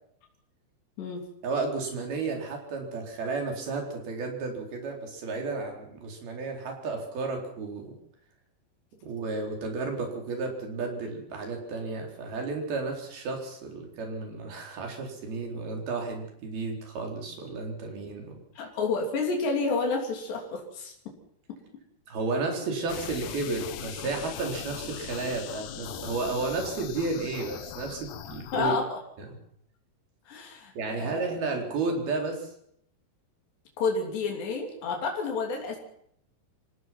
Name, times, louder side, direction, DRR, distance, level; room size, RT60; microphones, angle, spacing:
voice 1, 1.4-7.9 9.0-18.3 22.1-28.7 30.8-32.5, right 3 dB, 65° right, 2 dB, 6.0 m, -32 dB
voice 2, 18.6-20.9 28.5-29.0 30.3-31.2 33.8-35.8, left 4 dB, 85° left, 1 dB, 5.4 m, -30 dB
sound 1, 22.9-28.7, left 11 dB, 70° left, 2.1 m, -40 dB
26.0 x 17.5 x 6.0 m, 0.68 s
omnidirectional pair, 4.8 m